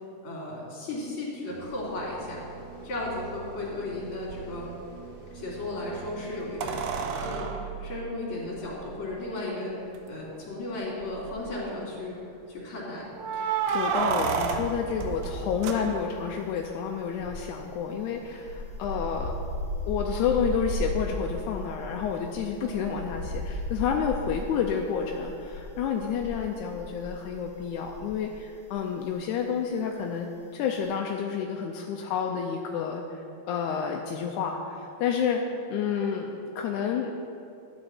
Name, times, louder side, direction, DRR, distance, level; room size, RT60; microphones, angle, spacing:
voice 1, 0.2-2.4 2.8-4.6 5.3-9.7 10.1-12.2 12.5-13.0 22.6-22.8 35.3-35.5, left 2 dB, 40° left, -5 dB, 3.4 m, -35 dB
sound 1, 1.5-7.0, right 4 dB, 50° right, 2.1 m, -45 dB
sound 2, 4.3-4.4 6.6-9.0 10.0-10.1 10.3-10.4 11.0-11.5 13.2-16.3 18.8-18.9, right 6 dB, 80° right, 2.2 m, -31 dB
voice 2, 13.3-19.4 19.9-30.3 30.5-33.2 33.5-35.4 35.7-37.2, left 7 dB, 80° left, 2 dB, 1.9 m, -30 dB
sound 3, 13.8-14.6 14.9-28.4 28.7-28.9, left 1 dB, 30° right, 1.2 m, -36 dB
13.0 x 8.9 x 4.2 m, 2.6 s
omnidirectional pair, 3.8 m